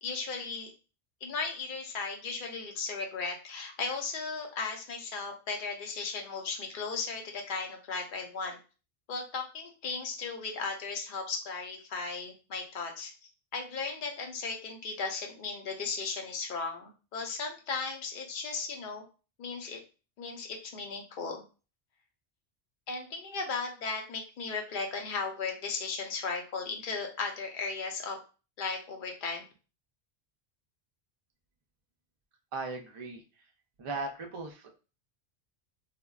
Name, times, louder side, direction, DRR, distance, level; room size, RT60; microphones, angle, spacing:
voice 1, 0.0-0.7 1.2-8.6 9.1-13.1 13.5-19.0 19.4-19.8 20.2-21.4 22.9-28.2 28.6-29.4, left 4 dB, 55° left, 2 dB, 0.7 m, -36 dB
voice 2, 32.5-33.2 33.8-34.7, right 3 dB, 50° right, 3 dB, 0.4 m, -37 dB
3.3 x 2.1 x 2.3 m, 0.34 s
omnidirectional pair, 1.1 m